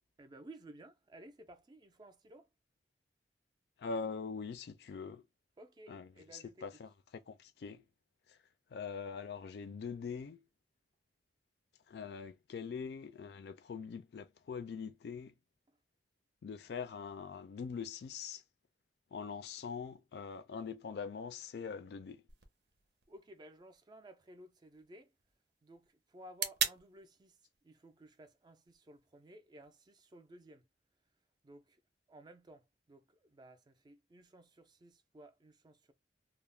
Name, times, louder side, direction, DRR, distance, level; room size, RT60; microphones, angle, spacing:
voice 1, 0.2-2.5 5.6-6.7 15.7-15.8 23.1-25.1 25.6-27.4 27.6-30.6 31.4-31.8 32.1-35.9, right 1 dB, 25° right, 0.3 m, -56 dB
voice 2, 3.8-5.2 5.9-6.9 7.3-7.8 8.7-10.4 11.9-15.3 16.4-18.4 19.1-22.2, left 5 dB, 65° left, 0.3 m, -43 dB
sound 1, 22.3-30.3, right 7 dB, 70° right, 0.6 m, -44 dB
2.3 x 2.1 x 3.2 m
head